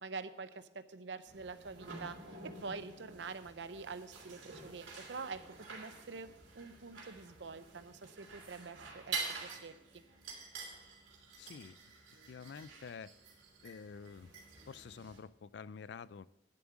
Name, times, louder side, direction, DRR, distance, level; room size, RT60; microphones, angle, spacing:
voice 1, 0.0-2.2 2.6-5.4 5.7-6.3 6.6-10.0, right 4 dB, 65° right, 12 dB, 0.6 m, -46 dB
sound 1, 1.3-15.2, right 4 dB, 85° right, 3.1 m, -48 dB
voice 2, 11.4-11.8 12.3-13.1 13.6-14.3 14.7-16.3, left 5 dB, 60° left, 19 dB, 0.3 m, -48 dB
11.0 x 7.4 x 6.1 m, 0.87 s
head